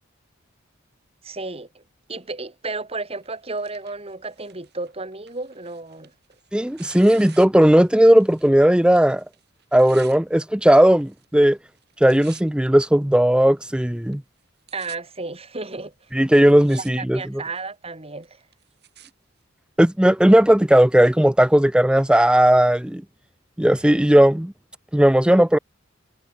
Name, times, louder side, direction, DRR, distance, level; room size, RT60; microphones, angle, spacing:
voice 1, 1.2-1.8 2.1-6.1 14.7-15.9 16.7-18.4 23.8-23.9, right 3 dB, 30° right, 2.7 m, -33 dB
Tearing, 3.1-8.6 8.8-10.2 10.9-11.4 11.7-12.7 13.3-13.4 14.1-14.2 14.4-15.0 15.7-15.8 16.3-16.9 17.2-17.7 18.2-19.1 19.9-20.0, right 11 dB, 55° right, 7.5 m, -49 dB
voice 2, 6.5-9.2 9.7-11.6 12.0-14.2 16.1-17.2 19.8-23.0 23.6-24.5 24.9-25.6, right 1 dB, 5° right, 0.5 m, -16 dB
head